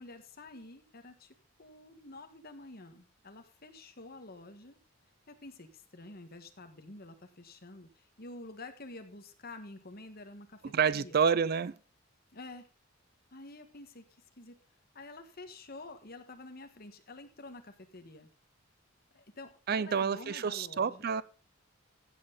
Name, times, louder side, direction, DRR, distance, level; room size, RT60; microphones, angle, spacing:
voice 1, 0.0-4.8 5.3-10.6 10.9-11.2 12.3-12.7 13.3-14.0 14.4-14.6 14.9-18.3 19.1-21.1, left 2 dB, 45° left, 1.5 m, -49 dB
voice 2, 10.7-11.7 19.7-21.2, right 6 dB, 45° right, 0.4 m, -28 dB
15.0 x 7.9 x 3.9 m
head